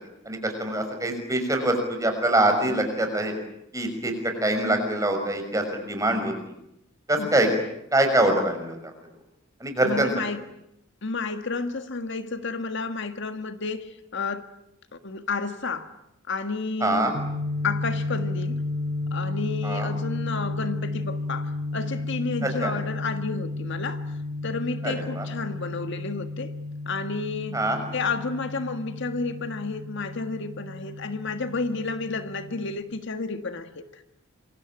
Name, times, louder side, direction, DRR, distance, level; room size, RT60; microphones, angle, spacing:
voice 1, 0.3-3.3 3.7-6.5 7.1-7.5 7.9-8.8 9.6-10.1 16.8-17.1 19.6-19.9 22.4-22.7 24.8-25.3 27.5-27.8, right 1 dB, 15° right, 5 dB, 6.0 m, -24 dB
voice 2, 7.2-7.5 9.8-10.4 11.0-14.5 14.9-15.9 16.3-17.1 17.6-18.6 19.1-24.1 24.4-26.5 26.8-27.6 27.9-34.0, left 4 dB, 60° left, 8 dB, 1.6 m, -31 dB
sound 1, 17.1-32.8, left 2 dB, 85° right, 4.8 m, -32 dB
27.5 x 23.5 x 9.0 m, 0.81 s
head